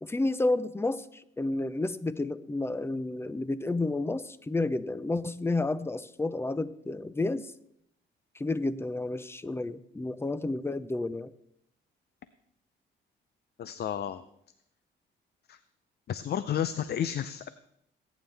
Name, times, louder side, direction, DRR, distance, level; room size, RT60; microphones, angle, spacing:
voice 1, 0.0-7.5 8.3-11.3, left 2 dB, 10° left, 15 dB, 0.7 m, -31 dB
voice 2, 13.6-14.2 15.5-15.6 16.1-17.5, left 9 dB, 55° left, 13 dB, 0.6 m, -31 dB
21.5 x 9.3 x 3.4 m, 0.75 s
cardioid pair, 90°, 20 cm